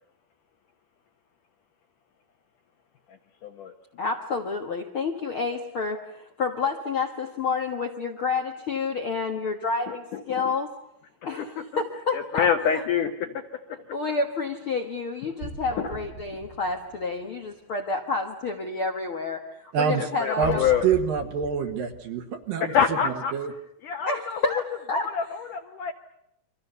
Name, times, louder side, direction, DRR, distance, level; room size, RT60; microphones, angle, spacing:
voice 1, 3.4-3.7 10.1-10.2 11.2-11.8 12.1-13.4 13.7-13.8 15.8-15.9 20.0-20.9 22.6-23.3 23.8-24.5 24.9-25.9, left 7 dB, 70° left, 6 dB, 2.1 m, -26 dB
voice 2, 4.0-10.7 11.2-12.5 12.7-12.8 13.9-20.8 24.1-25.1, left 4 dB, 85° left, 2 dB, 1.1 m, -29 dB
sound 1, 15.4-17.7 20.4-23.0, right 3 dB, 85° right, 8.2 m, -40 dB
voice 3, 19.7-20.1 20.4-20.6 20.8-23.5, right 7 dB, 65° right, 7 dB, 2.8 m, -26 dB
30.0 x 24.0 x 6.8 m, 0.80 s
omnidirectional pair, 5.0 m